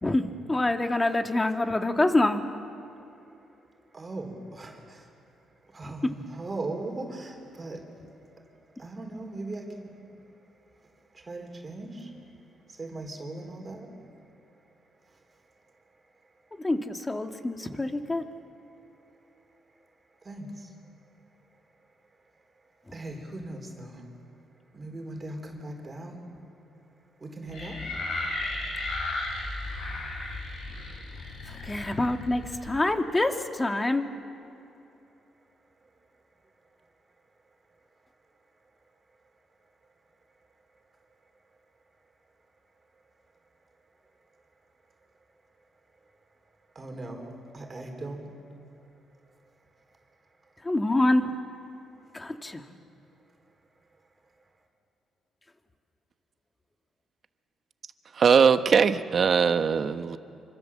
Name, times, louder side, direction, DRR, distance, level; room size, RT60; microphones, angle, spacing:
voice 1, 0.0-2.5 5.8-5.9 16.6-18.2 31.4-34.0 50.6-51.3 52.1-52.6, left 2 dB, 20° left, 5 dB, 1.9 m, -26 dB
voice 2, 3.9-5.2 5.6-8.0 8.7-10.3 10.8-12.2 12.7-14.0 15.0-15.5 15.9-16.0 16.2-16.3 18.8-18.9 20.2-20.9 22.3-24.1 24.7-26.3 27.2-28.0 28.5-28.6 35.8-35.9 36.4-36.5 46.7-48.4 50.4-50.5 52.0-52.1, right 2 dB, 30° right, 2 dB, 4.2 m, -40 dB
sound 1, 27.5-32.8, left 2 dB, 75° left, 6.4 m, -34 dB
voice 3, 58.2-60.2, right 6 dB, 50° right, 10 dB, 1.1 m, -21 dB
27.0 x 25.0 x 7.5 m, 2.7 s
cardioid pair, 90°, 0 cm